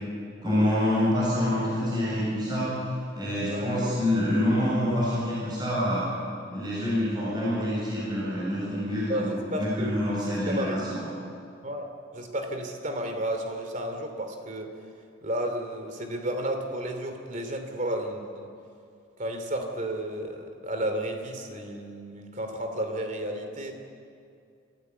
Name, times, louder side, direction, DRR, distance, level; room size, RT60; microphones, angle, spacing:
voice 1, 0.4-2.7 3.1-6.1 6.5-11.0, left 1 dB, 20° right, -7 dB, 7.6 m, -26 dB
voice 2, 9.1-10.2 10.5-10.9 11.6-14.7 15.2-18.5 19.2-23.7, right 1 dB, 40° right, 5 dB, 2.9 m, -32 dB
27.5 x 15.5 x 8.1 m, 2.4 s
head